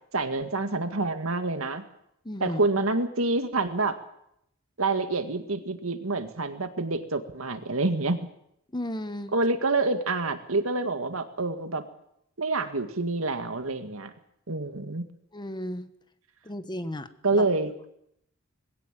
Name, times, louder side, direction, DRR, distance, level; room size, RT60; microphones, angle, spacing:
voice 1, 0.1-1.8 2.4-4.0 4.8-8.3 9.3-11.8 12.4-14.1 14.5-15.0 17.2-17.9, right 3 dB, 75° right, 8 dB, 2.0 m, -27 dB
voice 2, 2.2-2.6 8.7-9.3 15.3-15.9 16.4-17.4, left 1 dB, 20° left, 11 dB, 1.2 m, -34 dB
21.0 x 17.0 x 7.6 m, 0.74 s
head